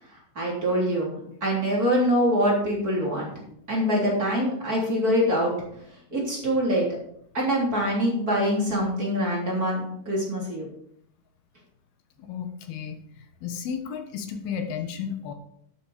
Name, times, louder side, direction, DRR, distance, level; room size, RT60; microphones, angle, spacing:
voice 1, 0.4-3.3 3.7-5.5 6.1-6.9 7.3-10.7, equal, 25° right, -4 dB, 3.6 m, -24 dB
voice 2, 12.2-13.0 13.4-15.3, left 7 dB, 85° left, 6 dB, 3.2 m, -33 dB
12.0 x 8.1 x 5.1 m, 0.70 s
omnidirectional pair, 4.3 m